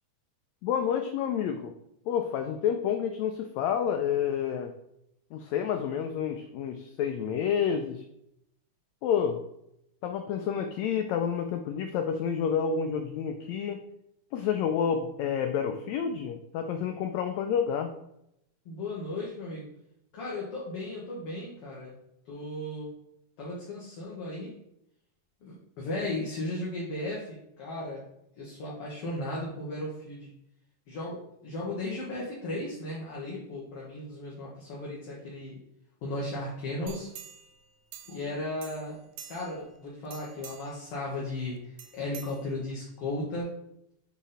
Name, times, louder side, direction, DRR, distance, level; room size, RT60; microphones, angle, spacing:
voice 1, 0.6-1.7 2.1-4.7 5.3-8.0 9.0-9.4 10.0-13.8 14.3-17.9, left 8 dB, 85° left, 6 dB, 1.5 m, -29 dB
voice 2, 18.7-19.7 20.1-21.9 22.3-22.9 23.4-24.5 25.4-28.0 28.4-30.3 30.9-35.6 36.0-37.1 38.1-39.0 39.3-43.5, left 2 dB, 55° left, -5 dB, 1.9 m, -36 dB
sound 1, 36.9-38.3 38.6-39.7 40.1-40.9 41.8-42.9 43.4-43.5, right 8 dB, 80° right, 2.0 m, -47 dB
7.5 x 3.6 x 4.1 m, 0.79 s
omnidirectional pair, 3.7 m